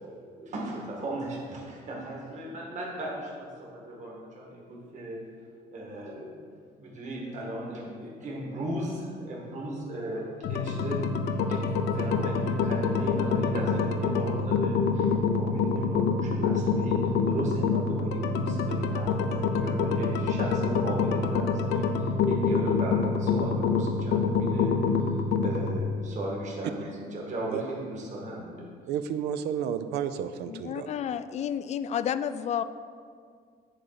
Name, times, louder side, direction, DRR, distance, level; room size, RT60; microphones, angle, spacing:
voice 1, 0.0-5.2 5.7-6.5 6.8-11.0 11.4-28.7, right 1 dB, 45° right, -3 dB, 2.0 m, -36 dB
sound 1, 10.4-25.8, left 4 dB, 85° left, 0.6 m, -26 dB
voice 2, 28.9-30.9, right 8 dB, 80° right, 10 dB, 0.5 m, -31 dB
voice 3, 30.5-32.6, left 9 dB, 40° left, 13 dB, 0.4 m, -31 dB
9.7 x 3.9 x 6.0 m, 2.1 s
cardioid pair, 110°, 17 cm